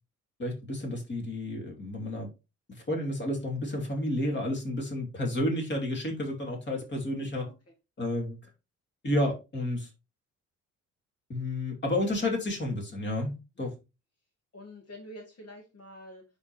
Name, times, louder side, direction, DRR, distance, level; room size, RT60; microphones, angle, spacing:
voice 1, 0.4-2.3 2.7-7.5 8.0-8.5 9.0-9.9 11.3-13.3 13.6-13.7, left 1 dB, 35° left, 2.7 m, -31 dB
voice 2, 14.5-16.2, equal, 55° left, 2.3 m, -47 dB
11.0 x 3.6 x 3.0 m
cardioid pair, 90°, 30 cm